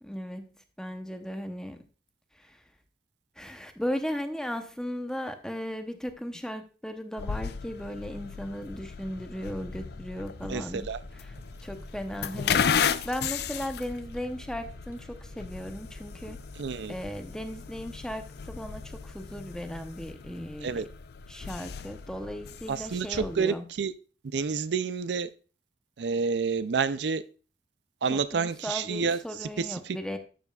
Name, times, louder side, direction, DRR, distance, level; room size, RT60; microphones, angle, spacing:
voice 1, 0.0-0.5 0.8-1.8 2.4-2.6 3.4-11.3 11.6-16.4 16.9-20.8 21.3-23.6 28.1-30.2, equal, 5° left, 0.8 m, -36 dB
sound 1, 7.2-23.4, left 7 dB, 65° left, 0.4 m, -35 dB
sound 2, 10.3-16.8, equal, 10° right, 2.0 m, -49 dB
voice 2, 10.5-11.0 16.6-16.9 20.6-20.8 22.7-23.9 24.3-25.3 26.0-27.2 28.0-30.0, right 5 dB, 75° right, 0.5 m, -29 dB
12.0 x 7.0 x 2.4 m
head